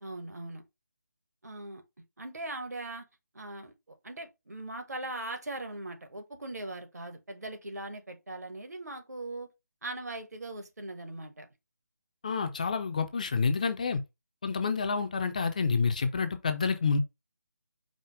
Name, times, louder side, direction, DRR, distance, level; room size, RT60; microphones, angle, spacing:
voice 1, 0.0-0.6 1.4-1.8 2.2-3.0 3.3-9.5 9.8-11.5, right 2 dB, 65° right, 1.2 m, -40 dB
voice 2, 12.2-14.0 14.4-17.0, left 5 dB, 25° left, 0.4 m, -28 dB
4.9 x 2.0 x 4.7 m
figure-of-eight pair, 155°, 9 cm